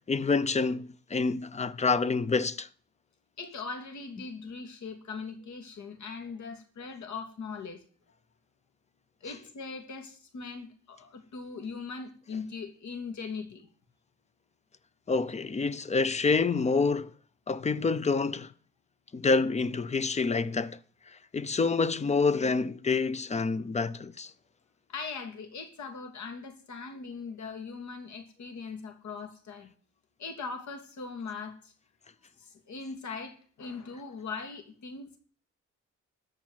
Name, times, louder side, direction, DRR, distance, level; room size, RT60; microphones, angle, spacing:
voice 1, 0.1-2.7 15.1-17.1 17.5-18.5 19.1-20.8 21.3-24.3, left 4 dB, 25° left, 0.7 m, -27 dB
voice 2, 3.4-7.8 9.2-13.7 24.9-29.7 30.2-31.7 32.4-35.2, left 4 dB, 70° left, 2.7 m, -40 dB
13.5 x 5.2 x 9.2 m
cardioid pair, 120°, 30 cm